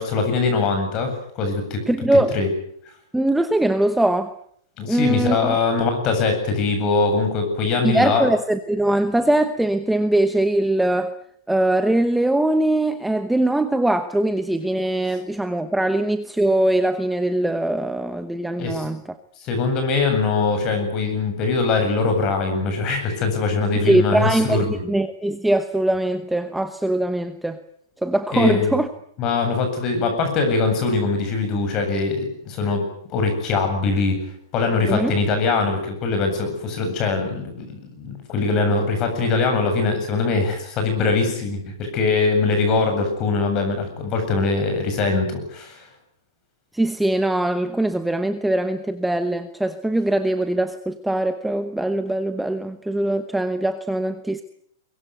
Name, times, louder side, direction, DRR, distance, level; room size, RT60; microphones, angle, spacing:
voice 1, 0.0-1.8 2.3-2.5 4.8-8.2 18.6-18.8 19.4-24.7 28.3-28.7 29.2-32.8 33.1-34.2 34.5-45.9, left 4 dB, 25° left, 6 dB, 7.9 m, -22 dB
voice 2, 1.9-2.4 3.1-4.3 4.9-5.5 7.8-11.2 11.5-19.2 23.8-27.6 28.0-28.9 34.9-35.1 46.7-54.4, right 1 dB, 5° right, 9 dB, 1.0 m, -21 dB
23.0 x 21.0 x 9.5 m, 0.66 s
supercardioid pair, 170°, 2 cm